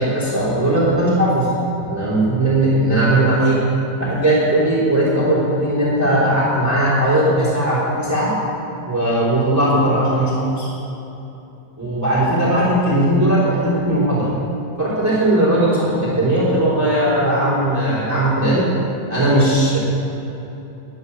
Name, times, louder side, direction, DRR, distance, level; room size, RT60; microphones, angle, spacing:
voice 1, 0.0-1.5 1.7-3.6 4.0-8.3 8.9-10.7 11.8-14.3 14.8-18.7 19.1-19.8, right 1 dB, 5° right, -9 dB, 2.9 m, -18 dB
11.0 x 9.6 x 6.6 m, 3.0 s
omnidirectional pair, 3.9 m